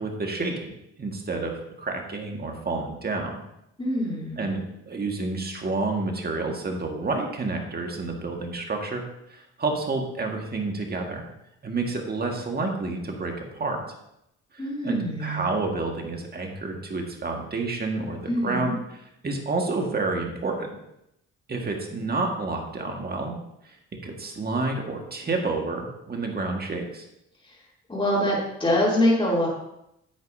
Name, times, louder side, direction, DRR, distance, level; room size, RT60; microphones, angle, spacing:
voice 1, 0.0-3.4 4.4-11.3 11.6-13.9 14.5-20.7 21.5-23.4 23.6-23.8 24.0-27.1, right 3 dB, 30° right, 2 dB, 1.8 m, -29 dB
voice 2, 3.8-4.5 14.6-15.5 18.3-18.7 27.9-29.5, left 1 dB, 15° left, -9 dB, 3.1 m, -24 dB
10.5 x 8.1 x 2.8 m, 0.82 s
cardioid pair, 90°, 30 cm